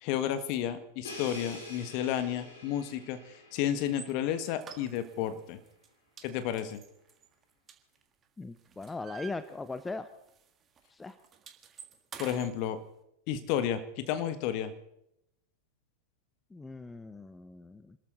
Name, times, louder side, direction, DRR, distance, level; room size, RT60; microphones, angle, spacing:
voice 1, 0.0-3.2 3.5-5.6 6.2-6.8 12.2-12.8 13.3-14.7, left 10 dB, 45° left, 10 dB, 1.6 m, -32 dB
Crash cymbal, 1.0-4.9, left 2 dB, 70° left, 4.9 m, -47 dB
sound 1, 3.9-4.1 4.6-5.3 5.7-5.9 6.2-8.2 8.6-10.0 10.3-10.5 10.8-12.5, right 7 dB, 25° right, 1.6 m, -49 dB
voice 2, 8.4-10.1 10.9-11.2 16.5-18.0, left 3 dB, 10° left, 12 dB, 0.8 m, -39 dB
26.5 x 13.5 x 4.0 m, 0.80 s
figure-of-eight pair, 90°, 0 cm